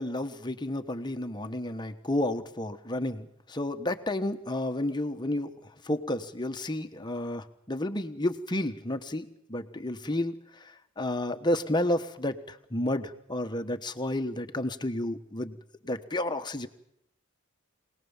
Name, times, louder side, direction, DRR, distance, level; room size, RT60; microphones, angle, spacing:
voice 1, 0.0-5.5 5.8-15.6 15.8-16.7, left 1 dB, 20° left, 7 dB, 1.3 m, -31 dB
25.0 x 19.0 x 7.3 m, 0.76 s
head